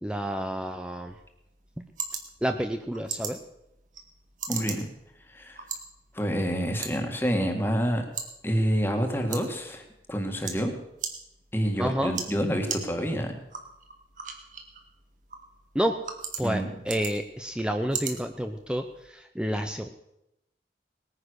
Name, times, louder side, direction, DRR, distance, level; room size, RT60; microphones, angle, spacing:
voice 1, 0.0-1.1 2.4-3.4 11.8-12.1 15.7-15.9 16.4-19.9, equal, 5° right, 6 dB, 0.7 m, -29 dB
sound 1, 1.1-19.1, right 6 dB, 45° right, 2.0 m, -41 dB
voice 2, 4.5-4.9 5.3-5.6 6.1-8.1 8.4-10.7 11.5-13.4 16.4-16.7, equal, 10° left, 4 dB, 1.9 m, -28 dB
19.5 x 9.8 x 6.4 m, 0.86 s
head